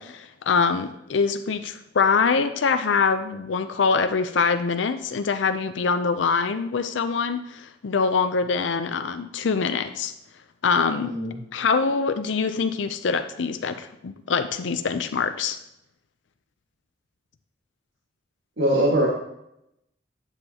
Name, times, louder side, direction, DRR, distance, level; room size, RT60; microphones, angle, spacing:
voice 1, 0.0-10.1 10.6-11.2 11.5-15.6, left 5 dB, 80° left, 9 dB, 0.5 m, -24 dB
voice 2, 11.0-11.4 18.6-19.1, right 1 dB, 85° right, -4 dB, 1.8 m, -22 dB
10.5 x 7.4 x 2.9 m, 0.81 s
head